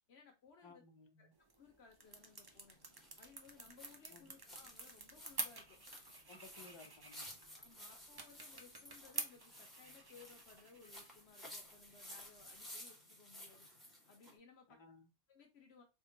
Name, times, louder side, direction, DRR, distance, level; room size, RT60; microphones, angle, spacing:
voice 1, 0.1-0.8 1.2-1.3 1.6-2.8 3.2-5.8 6.3-6.7 7.2-13.7 14.1-14.8 15.3-15.8, left 5 dB, 70° left, 0.9 m, -62 dB
voice 2, 0.6-1.3 4.1-4.3 6.3-7.3 14.7-15.1, left 4 dB, 35° left, 0.4 m, -59 dB
sound 1, 1.3-12.9, right 3 dB, 35° right, 0.4 m, -50 dB
sound 2, 2.1-14.4, left 1 dB, ahead, 1.0 m, -56 dB
3.6 x 2.1 x 3.8 m
omnidirectional pair, 1.1 m